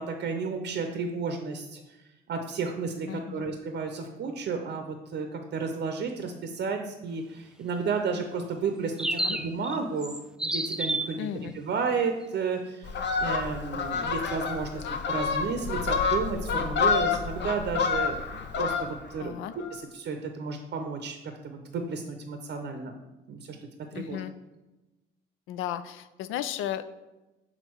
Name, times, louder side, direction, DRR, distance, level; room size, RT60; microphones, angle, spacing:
voice 1, 0.0-2.0 2.3-10.1 10.4-14.8 15.1-19.4 19.7-21.2 21.4-22.9 23.3-23.4 23.9-24.2, right 5 dB, 55° right, 5 dB, 0.6 m, -32 dB
voice 2, 3.1-3.5 9.1-9.4 11.2-11.5 19.2-19.5 23.9-24.3 25.5-26.8, left 11 dB, 90° left, 13 dB, 0.4 m, -34 dB
sound 1, 9.0-9.8 10.0-11.2, right 1 dB, 5° right, 0.4 m, -30 dB
Fowl, 12.8-19.2 19.5-19.8, left 5 dB, 60° left, 0.7 m, -28 dB
6.3 x 3.8 x 4.5 m, 1.1 s
cardioid pair, 90°, 20 cm